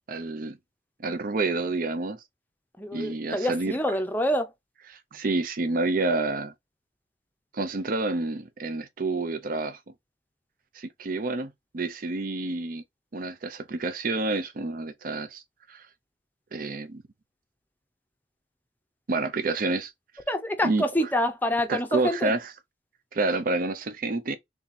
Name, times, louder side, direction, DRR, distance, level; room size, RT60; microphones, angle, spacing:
voice 1, 0.1-0.6 1.0-2.2 2.9-3.8 5.1-6.5 7.5-9.8 10.7-12.8 13.1-15.4 15.7-15.9 16.5-17.0 19.1-19.9 20.6-20.8 21.7-22.4 23.1-24.3, right 3 dB, 50° right, 0.5 m, -28 dB
voice 2, 2.8-4.5 20.3-22.3, equal, 10° left, 0.6 m, -27 dB
3.4 x 2.8 x 4.0 m
head